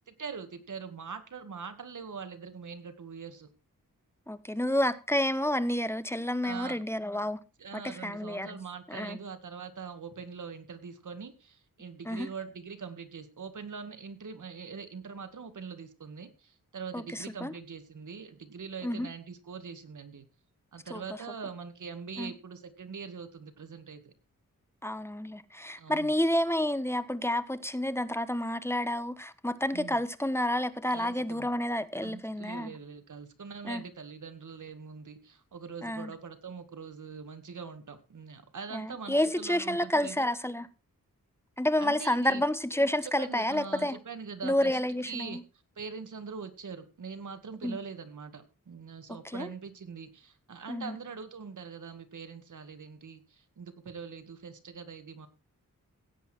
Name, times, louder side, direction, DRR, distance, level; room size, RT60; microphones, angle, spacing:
voice 1, 0.1-3.5 6.4-6.8 7.6-20.3 20.7-24.1 25.8-26.1 29.7-30.0 30.9-31.5 32.0-40.3 41.8-42.4 43.0-44.8 45.1-45.4 45.8-55.3, right 5 dB, 65° right, 2.1 m, -43 dB
voice 2, 4.3-7.4 7.7-8.6 8.9-9.2 12.1-12.3 16.9-17.5 18.8-19.1 20.9-21.0 22.2-22.3 24.8-32.7 33.6-33.8 35.8-36.1 38.7-40.7 41.6-44.0 44.4-45.4 47.6-47.8 49.2-49.5 50.7-51.0, left 1 dB, 5° left, 1.1 m, -30 dB
17.0 x 8.2 x 4.5 m
wide cardioid pair, 85°, 33 cm